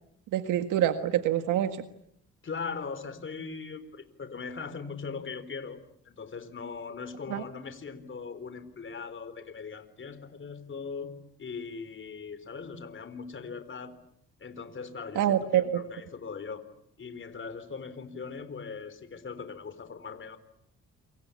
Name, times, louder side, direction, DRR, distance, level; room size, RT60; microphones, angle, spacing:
voice 1, 0.3-1.8 7.3-7.4 15.2-15.8, right 11 dB, 90° right, 8 dB, 1.7 m, -26 dB
voice 2, 2.4-11.1 11.4-13.9 14.4-16.6 17.0-20.4, left 5 dB, 40° left, 12 dB, 4.1 m, -40 dB
28.0 x 25.0 x 8.5 m, 0.73 s
cardioid pair, 90°, 30 cm